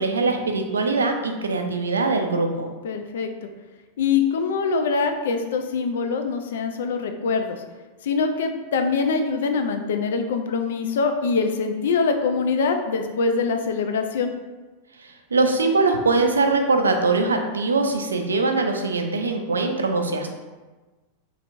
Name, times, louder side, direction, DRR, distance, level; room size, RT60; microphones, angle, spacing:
voice 1, 0.0-2.7 15.0-20.3, right 3 dB, 75° right, 4 dB, 0.3 m, -22 dB
voice 2, 2.8-3.5 4.0-7.6 8.0-14.3, left 5 dB, 60° left, 6 dB, 0.3 m, -24 dB
3.1 x 2.8 x 2.5 m, 1.2 s
figure-of-eight pair, 90°, 0 cm